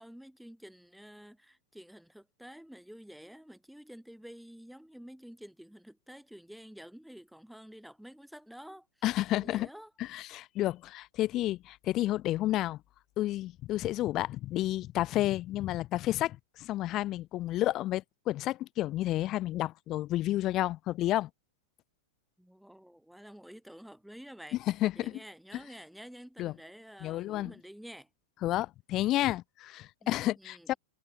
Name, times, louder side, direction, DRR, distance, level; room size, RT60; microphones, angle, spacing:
voice 1, 0.0-8.9 9.3-9.9 22.4-24.6 24.9-28.1 30.0-30.8, equal, ahead, 6.8 m, -50 dB
voice 2, 9.0-9.7 10.0-12.8 13.2-21.3 24.8-25.2 26.4-26.5 27.0-27.5 28.4-30.7, left 15 dB, 35° left, 3.0 m, -31 dB
figure-of-eight pair, 95°, 0 cm